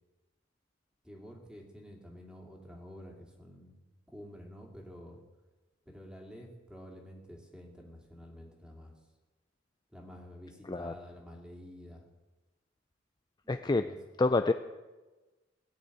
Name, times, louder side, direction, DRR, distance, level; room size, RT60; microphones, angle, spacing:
voice 1, 1.0-3.8 4.1-5.2 5.9-8.9 9.9-12.0 13.6-14.0, equal, 5° right, 0 dB, 2.5 m, -49 dB
voice 2, 13.5-13.9 14.2-14.5, left 3 dB, 20° left, 8 dB, 0.4 m, -27 dB
17.5 x 6.7 x 9.2 m, 1.2 s
head